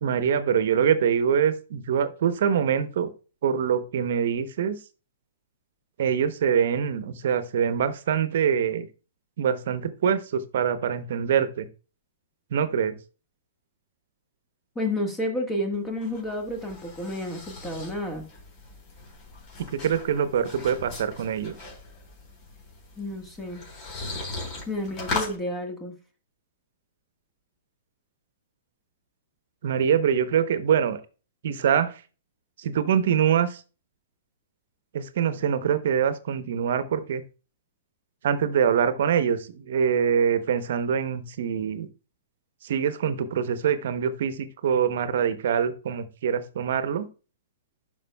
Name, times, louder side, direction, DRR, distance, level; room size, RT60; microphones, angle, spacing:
voice 1, 0.0-3.1 3.4-4.8 6.0-8.9 9.4-11.7 12.5-12.9 19.7-21.5 29.6-31.0 31.4-32.0 32.6-33.6 34.9-37.2 38.2-41.9 42.6-47.1, right 8 dB, 65° right, 12 dB, 0.8 m, -24 dB
voice 2, 14.7-18.2 23.0-23.6 24.7-25.9, left 1 dB, 15° left, 3 dB, 1.5 m, -30 dB
sound 1, 15.7-25.4, left 3 dB, 35° left, 4.0 m, -38 dB
11.5 x 5.2 x 2.3 m, 0.34 s
hypercardioid pair, 120°, 0 cm